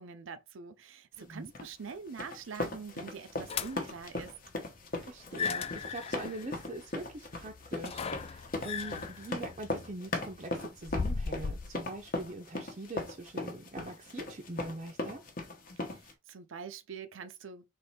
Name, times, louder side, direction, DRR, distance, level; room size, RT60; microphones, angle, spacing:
voice 1, 0.0-4.3 15.8-17.7, right 5 dB, 90° right, 0.6 m, -45 dB
voice 2, 1.2-1.5 5.0-15.2, right 1 dB, 35° right, 0.6 m, -43 dB
sound 1, 1.6-16.1, left 2 dB, 45° left, 0.9 m, -38 dB
sound 2, 3.5-4.0 5.2-11.8, left 5 dB, 30° left, 0.3 m, -38 dB
3.6 x 3.1 x 4.2 m
head